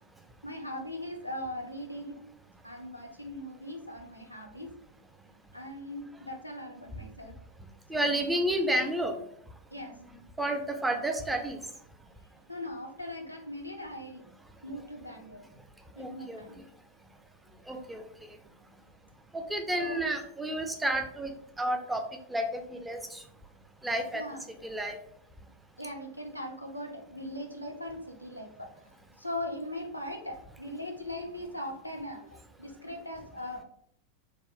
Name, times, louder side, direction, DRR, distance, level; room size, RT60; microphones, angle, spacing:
voice 1, 0.4-2.2 2.6-4.8 5.5-7.4 7.9-8.3 9.7-10.0 12.5-14.2 14.6-15.5 15.9-16.7 19.7-20.0 24.1-24.5 25.8-33.6, left 1 dB, 90° left, 1 dB, 0.5 m, -40 dB
voice 2, 7.9-9.2 10.4-11.6 16.0-16.4 17.7-18.4 19.3-22.0 22.3-23.2 23.8-24.2 24.6-25.0, right 1 dB, 5° right, 5 dB, 0.5 m, -31 dB
3.5 x 2.1 x 3.2 m, 0.69 s
figure-of-eight pair, 90°, 0 cm